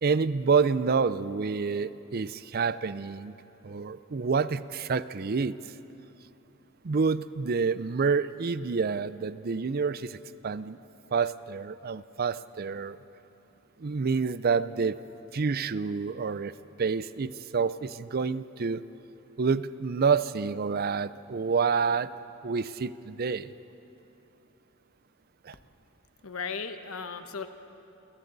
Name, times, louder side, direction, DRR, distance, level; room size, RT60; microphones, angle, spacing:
voice 1, 0.0-3.3 3.6-5.6 6.8-10.2 10.4-10.8 11.1-13.0 13.8-15.0 15.3-18.8 19.4-22.1 22.4-23.5 25.4-25.6, right 5 dB, 45° right, 15 dB, 0.5 m, -28 dB
voice 2, 26.2-27.5, left 5 dB, 75° left, 8 dB, 1.1 m, -36 dB
30.0 x 24.5 x 4.0 m, 2.9 s
head